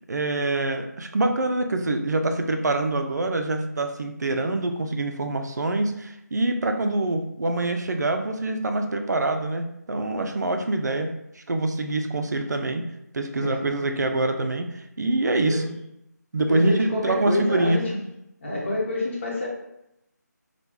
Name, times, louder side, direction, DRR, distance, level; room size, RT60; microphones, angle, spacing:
voice 1, 0.1-12.9 13.1-15.6 16.3-17.8, right 2 dB, 65° right, 5 dB, 0.4 m, -25 dB
voice 2, 13.3-13.9 15.5-15.8 16.5-18.1 18.4-19.5, left 2 dB, 40° left, -3 dB, 0.9 m, -28 dB
3.0 x 2.1 x 3.4 m, 0.82 s
figure-of-eight pair, 170°, 10 cm